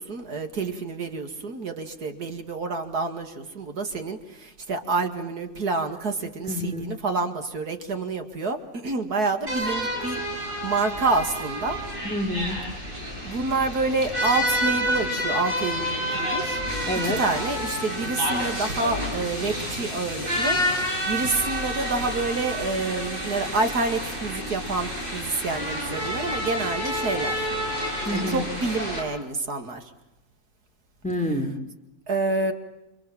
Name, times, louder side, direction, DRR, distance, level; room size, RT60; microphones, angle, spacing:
voice 1, 0.0-10.2 10.6-11.8 13.2-16.6 17.0-27.5 28.1-29.8 32.1-32.5, right 3 dB, 90° right, 6 dB, 2.8 m, -28 dB
voice 2, 6.5-6.9 12.0-12.6 16.9-17.2 28.0-28.4 31.0-31.6, left 1 dB, 5° left, 5 dB, 3.0 m, -27 dB
sound 1, 9.5-29.0, equal, 35° right, 8.4 m, -29 dB
29.5 x 26.0 x 7.6 m, 0.92 s
omnidirectional pair, 1.6 m